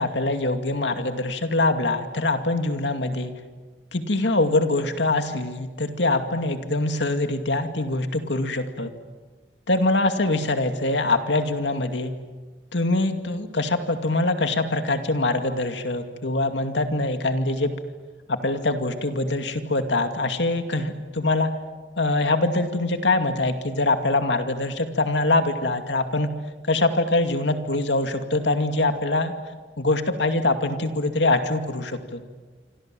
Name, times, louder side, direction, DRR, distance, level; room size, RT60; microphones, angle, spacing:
voice 1, 0.0-3.3 3.9-8.9 9.7-12.1 12.7-17.7 18.3-21.5 22.0-26.3 26.7-29.3 29.8-32.2, left 2 dB, 90° left, 7 dB, 2.4 m, -23 dB
26.5 x 26.5 x 7.7 m, 1.4 s
head